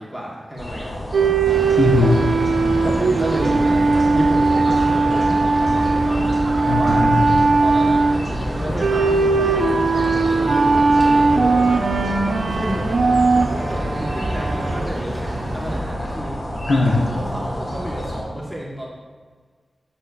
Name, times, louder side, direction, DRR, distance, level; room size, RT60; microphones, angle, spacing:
voice 1, 0.0-1.4 2.8-6.4 6.7-7.1 7.6-8.1 8.6-11.8 12.5-12.9 13.3-16.4 16.8-18.9, equal, ahead, -4 dB, 1.0 m, -32 dB
sound 1, 0.6-18.2, equal, 55° left, 1.7 m, -31 dB
sound 2, 1.1-14.8, right 3 dB, 85° right, 0.5 m, -19 dB
sound 3, 1.4-15.8, right 1 dB, 25° right, 1.1 m, -28 dB
voice 2, 1.8-2.2 6.7-7.2 16.7-17.0, left 3 dB, 75° left, 1 dB, 0.8 m, -18 dB
9.8 x 7.8 x 2.3 m, 1.5 s
wide cardioid pair, 115°, 0 cm